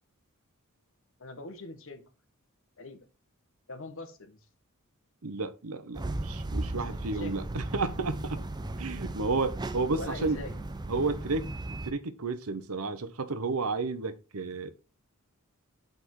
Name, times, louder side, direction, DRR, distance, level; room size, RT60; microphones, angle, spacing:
voice 1, 1.2-2.0 2.8-3.0 3.7-4.5 6.7-7.4 9.9-10.7, left 2 dB, 65° left, 1.4 m, -42 dB
voice 2, 5.2-8.4 8.8-10.4 10.9-11.5 11.8-14.7, right 3 dB, 70° right, 0.8 m, -32 dB
sound 1, 5.9-11.9, right 2 dB, 20° right, 0.6 m, -36 dB
6.8 x 5.2 x 4.6 m
head